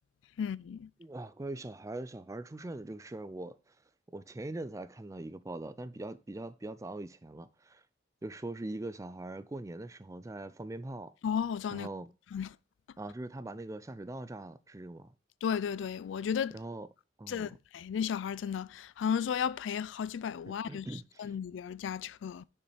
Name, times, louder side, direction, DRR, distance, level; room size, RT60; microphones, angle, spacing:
voice 1, 0.4-0.9 11.2-11.9 12.3-12.5 15.4-16.6 17.3-22.4, left 7 dB, 80° left, 0.3 m, -34 dB
voice 2, 1.0-3.7 4.1-7.8 8.2-11.1 11.7-12.1 13.0-15.1 16.5-16.9 17.2-17.6 20.5-21.3, right 2 dB, 15° right, 0.4 m, -42 dB
6.8 x 5.4 x 3.3 m
head